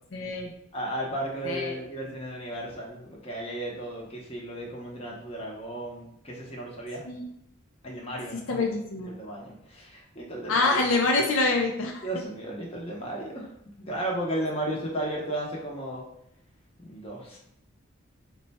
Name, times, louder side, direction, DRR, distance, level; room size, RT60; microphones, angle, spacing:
voice 1, 0.1-0.5 1.4-1.8 7.1-7.2 8.5-9.1 10.5-12.1, left 3 dB, 70° left, 1 dB, 0.5 m, -25 dB
voice 2, 0.7-7.0 7.8-8.7 9.0-10.8 12.0-13.5 13.8-16.0 16.8-17.4, right 1 dB, 25° left, -3 dB, 0.8 m, -34 dB
4.1 x 2.2 x 4.1 m, 0.75 s
head